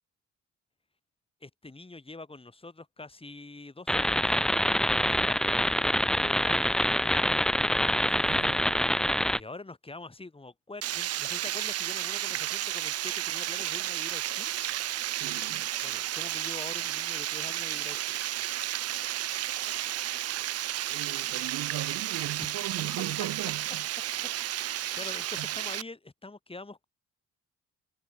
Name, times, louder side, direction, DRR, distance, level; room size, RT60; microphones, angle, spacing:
voice 1, 1.4-4.4 5.0-7.3 9.3-14.5 15.8-18.2 22.7-22.8 24.5-26.8, left 3 dB, 20° left, 7.3 m, -45 dB
sound 1, 3.9-9.4, equal, ahead, 0.6 m, -25 dB
voice 2, 7.8-8.7 15.1-15.7 20.9-23.9 25.4-25.5, right 13 dB, 80° right, 2.8 m, -38 dB
Water, 10.8-25.8, right 13 dB, 55° right, 0.5 m, -32 dB
cardioid pair, 90°, 30 cm